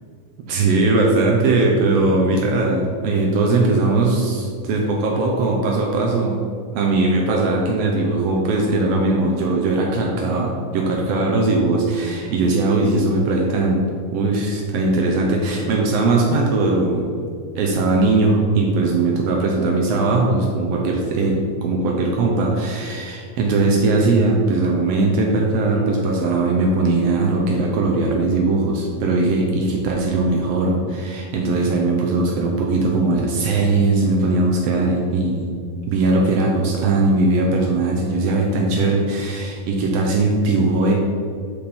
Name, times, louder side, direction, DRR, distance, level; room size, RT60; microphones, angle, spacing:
voice 1, 0.4-6.4 6.7-13.9 14.1-17.1 17.6-35.5 35.9-40.9, right 2 dB, 85° right, 0 dB, 1.4 m, -19 dB
7.3 x 5.2 x 4.3 m, 2.3 s
omnidirectional pair, 3.8 m